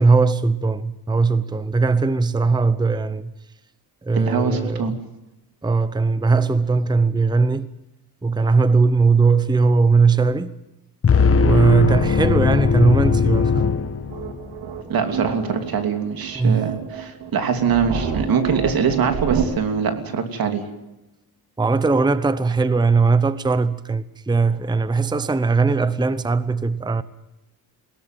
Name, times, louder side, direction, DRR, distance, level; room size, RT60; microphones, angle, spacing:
voice 1, 0.0-3.3 4.0-5.0 5.6-7.7 8.2-10.5 11.4-13.7 16.3-16.7 21.6-27.0, right 4 dB, 10° right, 0.8 m, -19 dB
voice 2, 4.1-4.9 14.9-20.6, right 6 dB, 65° right, 3.0 m, -23 dB
sound 1, 11.0-14.5, left 5 dB, 35° left, 1.6 m, -19 dB
sound 2, 14.1-19.5, right 6 dB, 90° right, 2.8 m, -29 dB
21.0 x 17.5 x 9.3 m
cardioid pair, 110°, 38 cm